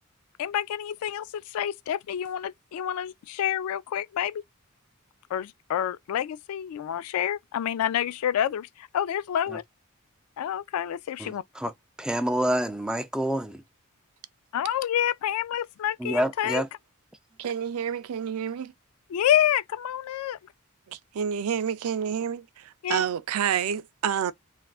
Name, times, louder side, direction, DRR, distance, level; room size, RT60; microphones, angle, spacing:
voice 1, 0.4-4.4 5.3-8.7 8.9-9.6 10.4-11.4 14.5-16.6 19.1-20.4 22.8-23.0, left 10 dB, 90° left, 0.3 m, -28 dB
voice 2, 11.2-11.7 12.0-13.6 16.0-16.7, right 1 dB, 5° right, 0.3 m, -27 dB
voice 3, 17.4-18.7 20.9-24.3, right 8 dB, 85° right, 0.4 m, -29 dB
3.4 x 2.4 x 2.3 m
head